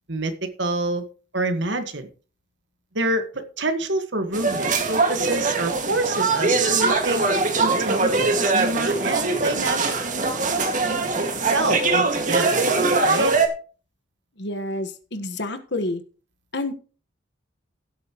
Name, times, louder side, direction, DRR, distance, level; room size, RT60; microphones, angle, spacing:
voice 1, 0.1-1.1 1.3-2.1 2.9-7.2 7.6-9.9 11.4-12.6 13.0-13.3, right 2 dB, 60° right, 8 dB, 1.7 m, -27 dB
sound 1, 4.3-13.5, right 3 dB, 40° right, 2.0 m, -22 dB
voice 2, 14.4-16.0 16.5-16.7, left 2 dB, 60° left, 9 dB, 1.5 m, -28 dB
16.5 x 8.3 x 3.1 m, 0.37 s
head